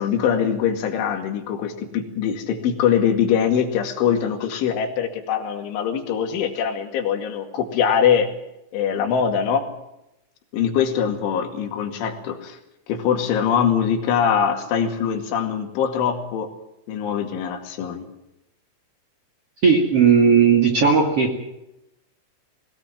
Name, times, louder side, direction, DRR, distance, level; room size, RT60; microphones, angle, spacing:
voice 1, 0.0-8.3 8.7-9.7 10.5-12.6 12.9-16.5 16.9-18.1, left 8 dB, 70° left, 4 dB, 4.5 m, -22 dB
voice 2, 19.6-21.4, right 6 dB, 45° right, 2 dB, 2.2 m, -16 dB
22.0 x 18.5 x 7.4 m, 0.88 s
omnidirectional pair, 6.0 m